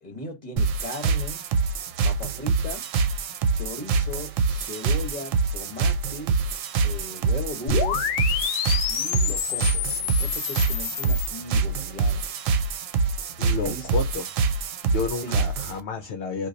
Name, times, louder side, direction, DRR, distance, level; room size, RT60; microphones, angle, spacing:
voice 1, 0.0-1.4 2.0-2.9 3.5-6.4 6.8-8.0 8.9-12.2 13.5-14.0 15.1-15.4, left 1 dB, 30° left, 1.4 m, -37 dB
sound 1, 0.6-15.8, right 4 dB, 70° right, 0.9 m, -25 dB
sound 2, 7.7-11.3, left 10 dB, 85° left, 1.0 m, -28 dB
voice 2, 13.4-14.3 14.8-16.5, left 4 dB, 60° left, 0.9 m, -30 dB
2.9 x 2.5 x 3.8 m
omnidirectional pair, 1.4 m